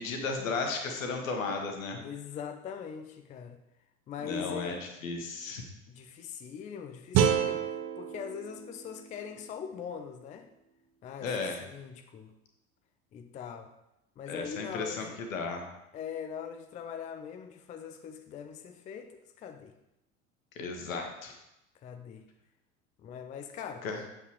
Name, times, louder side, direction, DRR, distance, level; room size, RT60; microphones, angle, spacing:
voice 1, 0.0-2.0 4.2-5.6 11.2-11.6 14.3-15.6 20.6-21.3 23.8-24.0, left 4 dB, 65° left, 3 dB, 1.4 m, -34 dB
voice 2, 2.0-3.6 4.1-4.8 5.9-10.5 11.0-12.3 13.1-13.7 14.2-15.2 15.9-19.7 21.8-22.2 23.0-23.9, left 7 dB, 20° left, 7 dB, 0.4 m, -42 dB
sound 1, 7.1-10.2, right 9 dB, 40° right, 0.7 m, -30 dB
8.2 x 7.1 x 3.1 m, 0.89 s
figure-of-eight pair, 70°, 43 cm